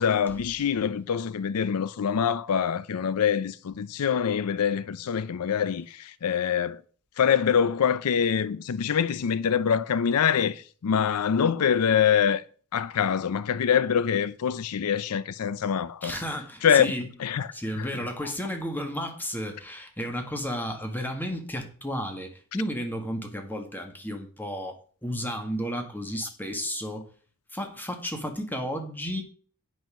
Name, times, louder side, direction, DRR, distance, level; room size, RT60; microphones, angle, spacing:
voice 1, 0.0-6.8 7.2-12.4 12.7-16.1 16.6-16.9 17.2-17.9, left 7 dB, 75° left, 0.5 m, -25 dB
voice 2, 16.0-17.0 17.5-27.1 27.5-29.2, equal, 10° left, 1.7 m, -33 dB
9.3 x 5.5 x 6.1 m
head